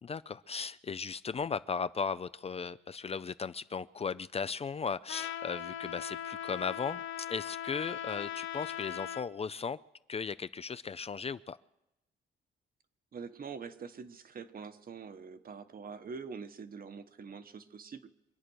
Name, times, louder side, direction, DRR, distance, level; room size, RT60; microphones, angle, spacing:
voice 1, 0.0-9.8 10.1-11.6, left 5 dB, 30° left, 15 dB, 0.5 m, -36 dB
Trumpet, 5.1-9.3, left 10 dB, 85° left, 0.9 m, -39 dB
voice 2, 13.1-18.1, right 5 dB, 45° right, 10 dB, 1.3 m, -45 dB
24.5 x 8.9 x 6.4 m, 0.90 s
cardioid pair, 90°, 20 cm